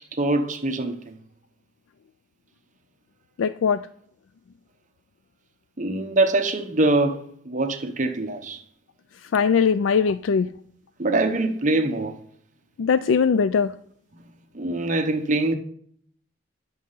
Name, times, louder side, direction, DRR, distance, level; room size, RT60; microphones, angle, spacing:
voice 1, 0.1-1.2 5.8-8.6 11.0-12.1 14.5-15.5, right 2 dB, 40° right, 0.9 m, -23 dB
voice 2, 3.4-3.8 9.3-10.5 12.8-13.7, left 6 dB, 85° left, 0.4 m, -20 dB
10.5 x 6.4 x 5.5 m
head